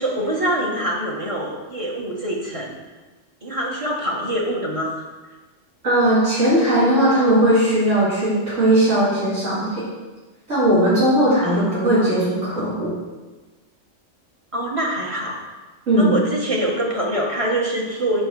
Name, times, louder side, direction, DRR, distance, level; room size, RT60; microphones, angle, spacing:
voice 1, 0.0-2.7 3.4-5.0 11.4-12.1 14.5-15.3 16.0-18.3, right 1 dB, 25° right, -2 dB, 1.4 m, -25 dB
voice 2, 5.8-9.8 10.5-12.9 15.9-16.2, right 1 dB, 70° right, -11 dB, 3.0 m, -18 dB
6.2 x 5.9 x 6.4 m, 1.2 s
omnidirectional pair, 1.3 m